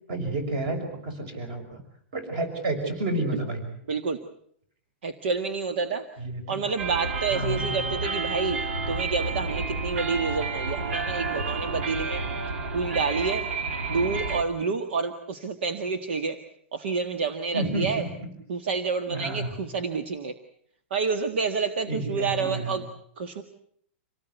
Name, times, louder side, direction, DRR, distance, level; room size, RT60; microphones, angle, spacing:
voice 1, 0.1-1.8 2.1-3.6 6.2-6.7 7.3-7.8 17.5-18.1 19.1-19.6 21.9-22.8, right 2 dB, 35° right, 8 dB, 6.1 m, -30 dB
voice 2, 3.9-4.2 5.0-6.1 6.5-8.6 8.9-12.2 12.7-13.5 13.9-16.4 16.7-18.0 18.5-20.3 20.9-22.8 23.2-23.4, right 4 dB, 60° right, 8 dB, 1.8 m, -28 dB
sound 1, 6.8-14.4, right 3 dB, 85° right, 3.2 m, -30 dB
27.0 x 18.5 x 8.1 m, 0.67 s
supercardioid pair, 175°, 7 cm